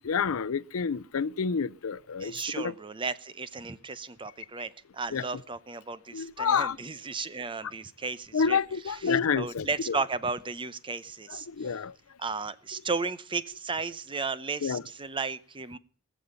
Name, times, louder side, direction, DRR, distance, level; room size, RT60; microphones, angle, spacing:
voice 1, 0.0-2.7 5.1-5.2 6.1-6.8 8.3-10.0 11.3-11.9 14.6-14.8, left 6 dB, 90° left, 0.6 m, -29 dB
voice 2, 2.2-8.6 8.9-11.5 12.2-15.8, right 4 dB, 25° right, 0.7 m, -34 dB
20.5 x 7.1 x 6.9 m
head